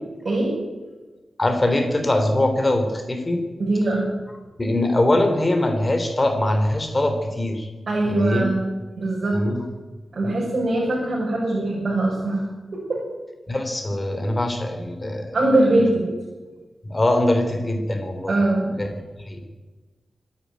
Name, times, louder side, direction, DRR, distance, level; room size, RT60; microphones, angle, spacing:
voice 1, 0.2-0.5 3.6-4.0 7.9-8.7 9.0-9.4 10.1-12.5 12.7-13.0 15.3-16.1 18.3-18.7, right 2 dB, 45° right, -4 dB, 6.7 m, -21 dB
voice 2, 1.4-3.4 4.6-7.7 8.0-8.5 9.3-9.6 10.2-10.4 13.5-15.3 16.8-18.3 18.7-18.9 19.2-19.4, left 1 dB, 20° left, 5 dB, 3.4 m, -22 dB
25.5 x 10.5 x 9.5 m, 1.3 s
wide cardioid pair, 145°, 0 cm